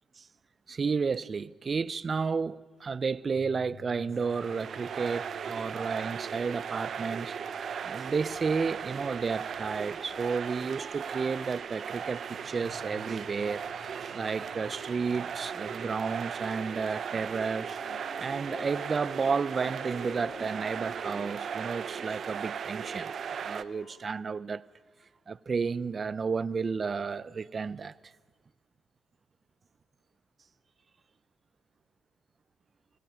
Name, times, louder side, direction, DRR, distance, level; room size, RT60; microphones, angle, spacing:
voice 1, 0.7-7.4 7.8-13.6 14.1-17.8 18.2-23.1 23.4-24.6 25.3-27.9, right 5 dB, 40° right, 0.5 m, -32 dB
sound 1, 3.4-9.6, left 5 dB, 20° left, 7.3 m, -56 dB
sound 2, 4.1-23.6, right 7 dB, 55° right, 0.9 m, -37 dB
sound 3, 8.0-24.0, left 6 dB, 65° left, 1.7 m, -53 dB
22.5 x 16.0 x 9.0 m
cardioid pair, 90°, 0 cm